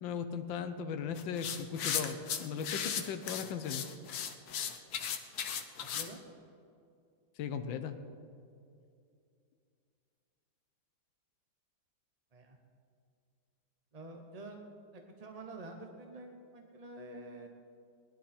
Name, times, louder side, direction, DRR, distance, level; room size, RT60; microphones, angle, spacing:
voice 1, 0.0-3.8 7.4-8.0, left 7 dB, 85° left, 9 dB, 1.5 m, -37 dB
sound 1, 1.2-6.1, left 8 dB, 60° left, 1.3 m, -36 dB
voice 2, 5.8-6.2 12.3-12.6 13.9-14.6 14.9-17.5, right 2 dB, 35° right, 3 dB, 0.6 m, -48 dB
19.5 x 11.0 x 4.3 m, 2.4 s
omnidirectional pair, 2.0 m